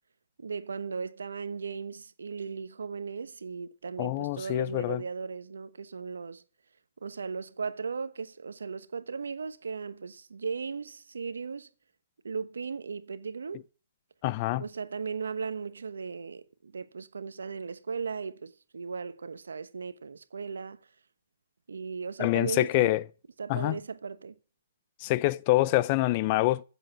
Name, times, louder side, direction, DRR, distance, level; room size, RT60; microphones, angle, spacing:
voice 1, 0.4-6.4 7.0-11.7 12.2-13.6 14.6-20.8 21.7-22.9 23.4-24.3, right 5 dB, 85° right, 1.1 m, -37 dB
voice 2, 4.0-5.0 14.2-14.6 22.2-23.0 23.5-23.8 25.0-26.6, left 18 dB, 40° left, 0.6 m, -26 dB
15.0 x 7.4 x 7.0 m
hypercardioid pair, 135°, 0 cm